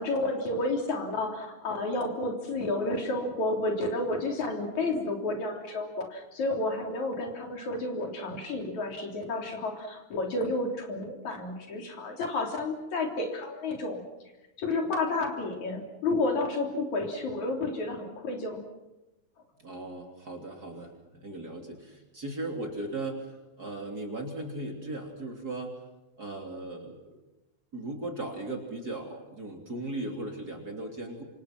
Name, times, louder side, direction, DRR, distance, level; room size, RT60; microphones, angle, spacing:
voice 1, 0.0-14.0 14.6-18.6, left 2 dB, 65° left, 2 dB, 4.7 m, -31 dB
voice 2, 19.6-23.3 23.6-25.7 26.2-27.2 27.7-31.2, right 2 dB, 30° right, 2 dB, 3.4 m, -37 dB
27.0 x 26.5 x 6.0 m, 1.0 s
omnidirectional pair, 3.6 m